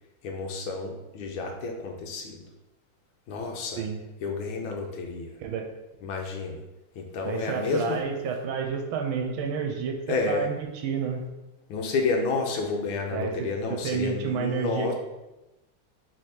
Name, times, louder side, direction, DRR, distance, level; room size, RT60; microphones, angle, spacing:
voice 1, 0.2-2.4 3.3-3.9 4.2-5.3 6.0-6.6 6.9-8.0 10.1-10.5 11.7-14.9, left 3 dB, 90° left, 2 dB, 1.5 m, -30 dB
voice 2, 7.2-11.2 13.1-14.9, right 6 dB, 85° right, 4 dB, 1.4 m, -30 dB
3.7 x 3.3 x 4.2 m, 1.0 s
omnidirectional pair, 2.2 m